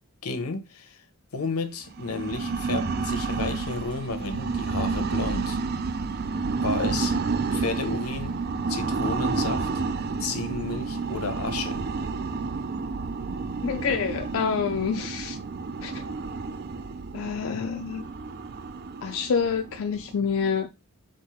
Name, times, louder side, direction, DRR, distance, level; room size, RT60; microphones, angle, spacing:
voice 1, 0.2-1.0 1.3-5.6 6.6-7.2 7.5-8.4 8.7-9.7 10.2-11.8, left 4 dB, 90° left, 0.8 m, -32 dB
sound 1, 1.9-20.6, right 4 dB, 45° right, 0.4 m, -30 dB
voice 2, 13.6-15.4 15.8-16.0 17.1-18.1 19.0-20.7, left 6 dB, 65° left, 0.4 m, -27 dB
4.4 x 2.5 x 4.7 m
head